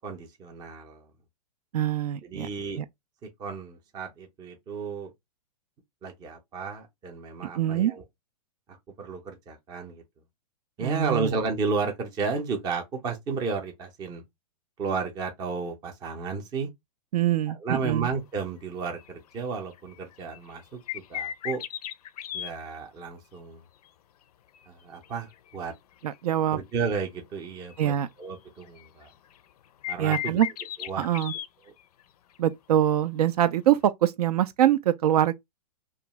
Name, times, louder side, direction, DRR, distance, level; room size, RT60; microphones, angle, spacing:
voice 1, 0.0-1.1 2.2-2.8 3.2-5.1 6.0-8.0 8.7-10.0 10.8-14.2 14.8-16.7 17.6-21.6 22.3-23.6 24.7-25.7 26.5-29.1 29.9-30.4 30.8-31.1, right 4 dB, 20° right, 0.6 m, -33 dB
voice 2, 1.7-2.5 2.8-2.9 7.6-7.9 10.8-11.3 17.1-18.1 26.0-26.6 27.8-28.1 30.0-30.5 31.0-31.3 32.4-35.3, right 11 dB, 65° right, 0.4 m, -24 dB
sound 1, 19.0-19.4 19.7-22.5 24.5-25.7 26.1-26.2 27.7-27.8 28.4-29.5 29.8-32.0 32.4-32.5 33.9-34.0, left 11 dB, 65° left, 0.4 m, -36 dB
2.5 x 2.3 x 2.9 m
hypercardioid pair, 140°, 21 cm